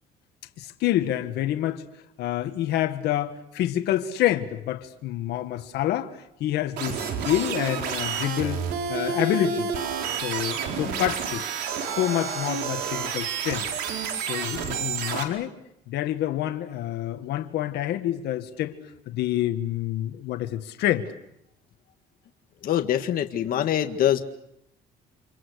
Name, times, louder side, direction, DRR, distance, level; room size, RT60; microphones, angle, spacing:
voice 1, 0.6-1.8 2.2-9.7 10.2-11.4 11.9-13.7 14.3-15.5 15.9-18.8 19.1-21.1, left 12 dB, 80° left, 1.8 m, -27 dB
sound 1, 6.8-15.2, right 6 dB, 85° right, 4.5 m, -30 dB
voice 2, 22.6-24.2, left 11 dB, 60° left, 1.8 m, -24 dB
29.5 x 28.0 x 6.6 m
cardioid pair, 110°, 17 cm